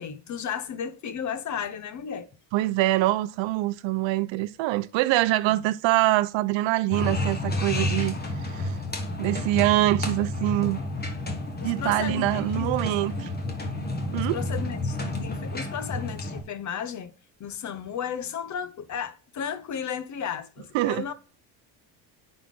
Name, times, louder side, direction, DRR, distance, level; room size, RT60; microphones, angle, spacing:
voice 1, 0.0-2.3 5.5-5.6 11.6-12.9 14.3-17.1 17.4-21.1, left 8 dB, 40° left, 0.7 m, -34 dB
voice 2, 2.5-8.8 9.2-10.8 11.6-13.3 14.1-14.4 20.7-21.0, right 17 dB, 85° right, 0.7 m, -24 dB
sound 1, 6.9-16.4, left 1 dB, 20° left, 1.3 m, -30 dB
9.5 x 4.1 x 3.7 m
cardioid pair, 155°, 45 cm